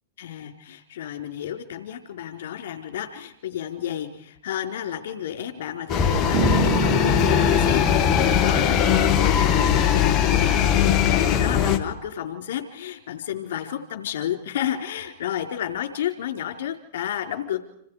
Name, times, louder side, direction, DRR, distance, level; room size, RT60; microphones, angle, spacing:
voice 1, 0.2-17.6, left 10 dB, 70° left, 5 dB, 4.3 m, -31 dB
sound 1, 5.9-11.8, left 8 dB, 35° left, 2.3 m, -20 dB
sound 2, 6.3-10.3, right 6 dB, 60° right, 4.8 m, -30 dB
28.5 x 28.0 x 5.0 m, 0.70 s
hypercardioid pair, 125°, 0 cm